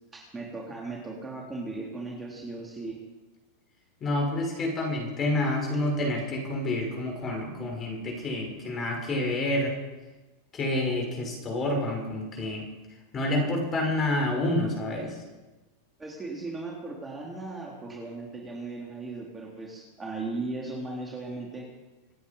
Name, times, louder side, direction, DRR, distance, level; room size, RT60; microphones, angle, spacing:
voice 1, 0.1-3.0 16.0-21.7, right 3 dB, 15° right, -2 dB, 3.6 m, -37 dB
voice 2, 4.0-9.7 10.5-12.6 13.1-15.2, left 1 dB, 30° left, 1 dB, 6.6 m, -28 dB
26.5 x 9.5 x 5.6 m, 1.2 s
hypercardioid pair, 110°, 0 cm